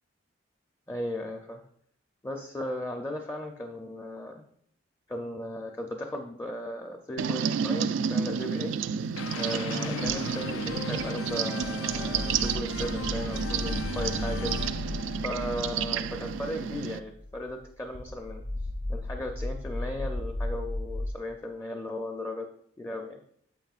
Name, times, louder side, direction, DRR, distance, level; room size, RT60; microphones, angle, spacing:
voice 1, 0.9-1.6 2.2-4.4 5.1-8.7 9.4-14.9 15.2-18.4 18.9-22.5 22.8-23.2, left 1 dB, 15° left, 3 dB, 0.5 m, -36 dB
sound 1, 7.2-17.0, right 7 dB, 80° right, 0.4 m, -31 dB
sound 2, 9.2-16.1, left 7 dB, 85° left, 0.3 m, -39 dB
sound 3, 10.1-10.2 10.7-11.3 11.6-21.1, left 2 dB, 65° left, 1.0 m, -36 dB
9.1 x 7.6 x 2.4 m, 0.67 s
head